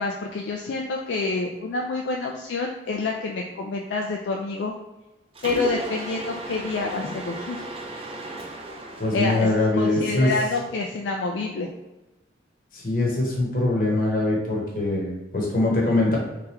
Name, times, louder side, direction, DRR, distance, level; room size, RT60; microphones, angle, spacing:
voice 1, 0.0-4.7 5.4-7.7 9.1-11.7, left 3 dB, 70° left, 1 dB, 0.3 m, -28 dB
Mechanisms, 5.3-10.5, right 1 dB, 30° right, 0.4 m, -36 dB
voice 2, 9.0-10.3 12.7-16.2, left 2 dB, 45° left, -2 dB, 1.0 m, -23 dB
3.4 x 3.3 x 2.9 m, 1.0 s
head